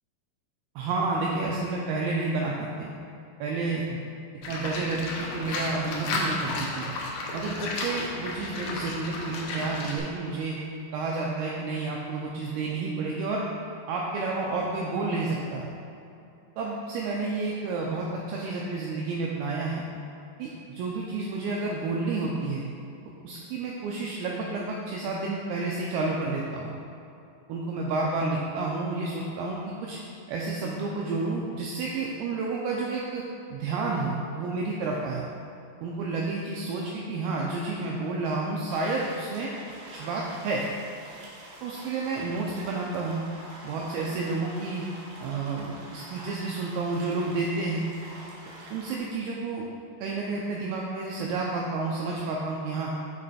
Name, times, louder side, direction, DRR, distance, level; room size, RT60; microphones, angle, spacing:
voice 1, 0.8-2.9 3.4-4.0 4.5-6.9 7.3-10.6 10.9-13.5 13.9-15.6 16.6-19.8 20.4-22.6 23.2-26.7 27.5-30.0 30.3-33.2 33.5-35.2 35.8-39.5 39.9-40.7 41.6-43.2 43.6-44.9 45.2-47.9 48.7-49.7 50.0-52.9, right 3 dB, 85° right, -3 dB, 2.2 m, -30 dB
Livestock farm animals working animals, 4.4-10.0, left 2 dB, 85° left, 1.9 m, -33 dB
sound 1, 38.7-49.0, right 1 dB, 65° right, 2.3 m, -46 dB
6.1 x 5.3 x 4.1 m, 2.7 s
omnidirectional pair, 5.0 m